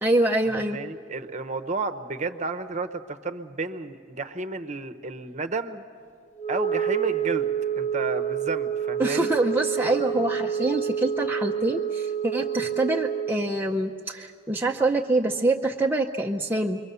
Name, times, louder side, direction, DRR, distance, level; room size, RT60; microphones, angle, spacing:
voice 1, 0.0-0.8 9.0-16.8, right 2 dB, 10° right, 0 dB, 0.6 m, -25 dB
voice 2, 0.7-5.8 6.5-7.5 7.8-9.3, right 3 dB, 35° right, 8 dB, 0.9 m, -31 dB
Wind instrument woodwind instrument, 6.4-13.5, right 8 dB, 35° left, 0.9 m, -28 dB
27.0 x 23.0 x 6.9 m, 2.3 s
head